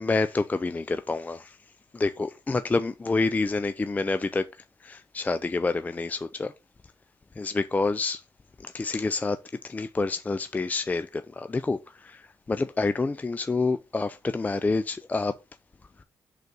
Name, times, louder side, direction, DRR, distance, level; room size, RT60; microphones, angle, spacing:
voice 1, 0.0-1.6 1.9-6.5 7.4-8.2 8.6-15.4 16.0-16.1, left 3 dB, 20° left, 0.4 m, -28 dB
5.3 x 4.0 x 5.9 m
cardioid pair, 80°, 8 cm